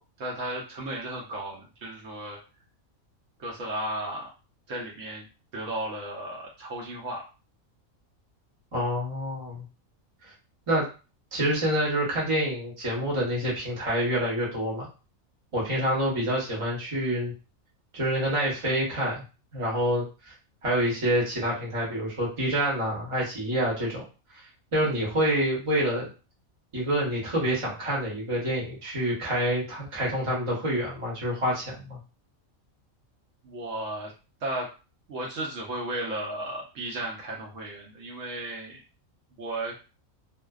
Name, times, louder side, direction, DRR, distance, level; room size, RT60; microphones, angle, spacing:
voice 1, 0.0-2.4 3.4-4.3 4.7-5.2 5.5-7.2 24.8-25.0 33.4-34.1 34.4-34.7 35.1-38.8 39.4-39.7, right 1 dB, 65° right, -3 dB, 1.0 m, -34 dB
voice 2, 8.7-9.6 10.7-10.9 11.3-14.9 15.5-17.3 17.9-19.2 19.5-20.3 20.6-24.0 24.7-26.1 26.7-32.0, equal, 25° right, -5 dB, 0.9 m, -27 dB
2.5 x 2.2 x 2.3 m, 0.32 s
omnidirectional pair, 1.5 m